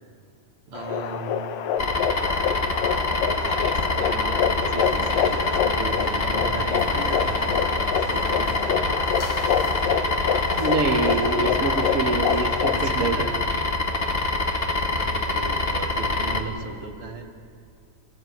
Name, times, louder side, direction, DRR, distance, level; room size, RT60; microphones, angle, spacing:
sound 1, 0.7-12.9, left 8 dB, 80° left, 2.8 m, -27 dB
voice 1, 0.7-1.6 3.1-8.7 12.6-13.3 14.3-14.7 14.9-17.3, right 3 dB, 45° right, 4 dB, 2.8 m, -37 dB
sound 2, 1.8-16.4, left 2 dB, 35° left, 0.9 m, -25 dB
sound 3, 4.8-13.1, left 3 dB, 60° left, 2.8 m, -39 dB
voice 2, 10.6-13.1, right 4 dB, 60° right, 5 dB, 0.8 m, -25 dB
26.5 x 20.5 x 9.4 m, 2.5 s
omnidirectional pair, 3.8 m